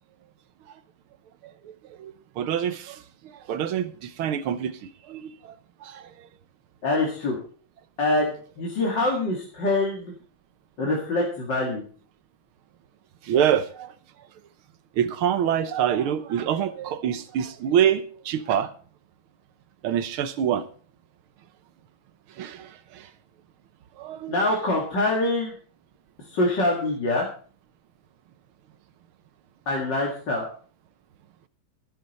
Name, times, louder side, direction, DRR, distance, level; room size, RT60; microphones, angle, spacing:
voice 1, 2.0-3.0 3.5-4.7 5.1-5.2 5.8-6.0 13.3-13.9 15.0-18.7 19.8-20.6 22.4-22.7 24.0-24.4, right 9 dB, 80° right, 1.8 m, -25 dB
voice 2, 6.8-7.4 8.0-10.1 10.8-11.8 24.3-25.5 26.3-27.3 29.7-30.5, left 2 dB, 55° left, 2.8 m, -24 dB
13.0 x 12.0 x 4.3 m
omnidirectional pair, 2.3 m